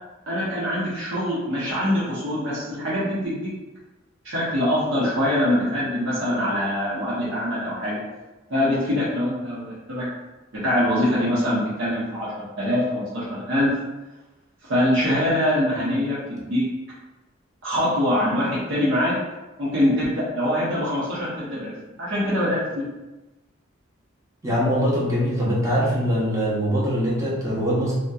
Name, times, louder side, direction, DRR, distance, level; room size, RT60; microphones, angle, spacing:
voice 1, 0.3-3.5 4.2-8.0 8.5-10.1 10.5-13.7 14.7-16.6 17.6-19.1 19.6-21.7 22.0-22.8, left 1 dB, 90° right, -9 dB, 0.8 m, -23 dB
voice 2, 24.4-27.9, equal, 15° right, -7 dB, 0.7 m, -22 dB
2.7 x 2.1 x 2.3 m, 1.1 s
head